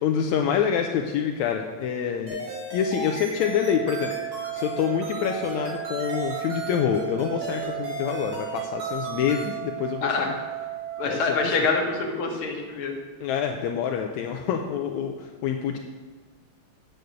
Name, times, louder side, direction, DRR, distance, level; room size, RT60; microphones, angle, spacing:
voice 1, 0.0-2.4 2.7-4.1 4.5-10.3 11.1-11.6 13.2-15.8, left 8 dB, 80° left, 3 dB, 1.9 m, -26 dB
sound 1, 2.3-9.5, equal, 50° right, 3.9 m, -36 dB
sound 2, 3.4-11.6, right 13 dB, 80° right, 2.1 m, -35 dB
voice 2, 10.0-10.3 11.0-13.0, left 4 dB, 50° left, 1 dB, 2.1 m, -25 dB
8.7 x 6.6 x 7.8 m, 1.4 s
omnidirectional pair, 3.4 m